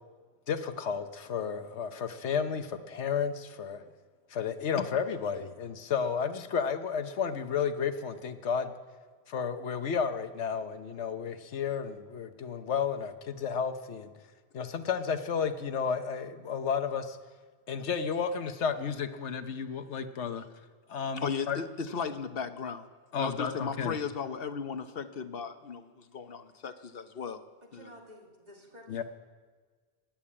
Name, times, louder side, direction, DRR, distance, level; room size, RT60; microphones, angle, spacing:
voice 1, 0.5-3.8 4.3-8.8 9.3-14.1 14.5-17.2 17.7-20.4 20.9-21.6 23.1-23.9 28.9-29.0, left 6 dB, 80° left, 1.2 m, -32 dB
voice 2, 21.2-22.9 23.2-27.5 27.7-27.9, left 6 dB, 60° left, 1.0 m, -36 dB
voice 3, 27.6-29.0, equal, 40° right, 2.7 m, -52 dB
14.5 x 10.5 x 8.6 m
omnidirectional pair, 1.2 m